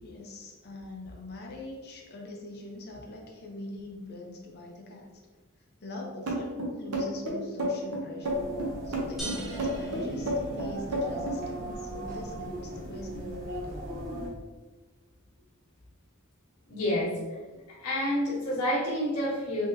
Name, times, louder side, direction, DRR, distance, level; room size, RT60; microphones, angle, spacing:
voice 1, 0.0-5.1 5.8-8.5 8.8-13.8, left 2 dB, 50° left, -1 dB, 0.7 m, -42 dB
sound 1, 6.3-11.4, equal, 70° right, 0.8 m, -30 dB
sound 2, 8.2-14.3, right 1 dB, 45° right, 1.4 m, -38 dB
sound 3, 9.2-11.0, right 2 dB, ahead, 0.8 m, -41 dB
voice 2, 16.7-17.1 17.5-19.7, left 1 dB, 80° left, -6 dB, 1.4 m, -29 dB
3.8 x 3.4 x 2.7 m, 1.3 s
head